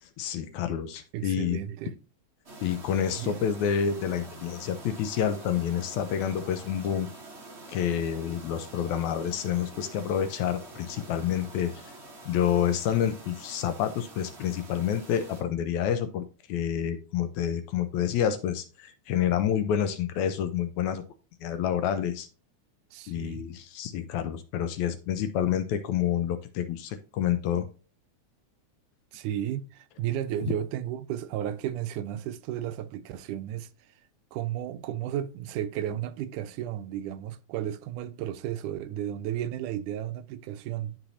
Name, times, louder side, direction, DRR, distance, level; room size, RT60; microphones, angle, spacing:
voice 1, 0.0-1.6 2.6-7.1 7.7-11.9 12.3-21.0 21.4-22.3 23.1-27.7 30.4-30.5, left 9 dB, 80° left, 1.8 m, -28 dB
voice 2, 1.1-2.0 3.2-3.5 22.9-23.5 29.1-33.7 34.3-41.0, right 11 dB, 85° right, 2.0 m, -33 dB
sound 1, 2.4-15.4, right 2 dB, 65° right, 0.6 m, -46 dB
11.5 x 4.0 x 2.7 m
omnidirectional pair, 3.5 m